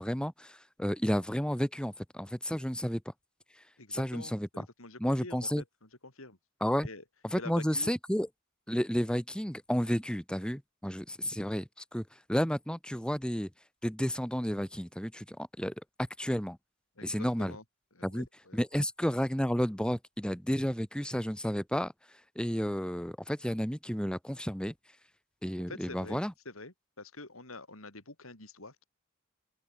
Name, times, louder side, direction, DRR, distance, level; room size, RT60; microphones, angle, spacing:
voice 1, 0.0-3.1 3.9-4.6 5.0-5.6 6.6-6.9 7.2-8.3 8.7-13.5 13.8-15.7 16.2-16.6 17.0-17.5 18.0-18.2 18.5-21.9 22.3-24.7 25.4-26.3, equal, 5° left, 1.7 m, -32 dB
voice 2, 3.8-6.4 6.8-7.0 7.3-7.9 17.0-17.6 17.9-18.6 25.7-28.8, left 2 dB, 90° left, 5.8 m, -47 dB
open air
head